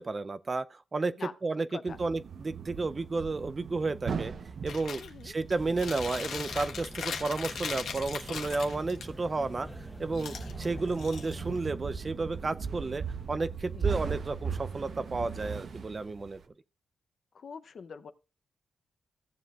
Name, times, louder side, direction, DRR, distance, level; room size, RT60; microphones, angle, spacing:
voice 1, 0.0-4.3 4.6-9.7 10.0-16.4, right 3 dB, 35° right, 0.5 m, -32 dB
sound 1, 1.9-16.4, right 6 dB, 60° right, 0.9 m, -39 dB
Chewing mastication, 4.7-5.1 5.5-9.0 10.1-11.6, left 6 dB, 85° left, 1.3 m, -39 dB
voice 2, 5.0-5.4 13.7-14.0 17.3-18.1, left 5 dB, 60° left, 0.7 m, -44 dB
sound 2, 5.6-11.6, right 1 dB, 10° right, 1.3 m, -44 dB
15.5 x 7.4 x 2.4 m
cardioid pair, 85°, 0 cm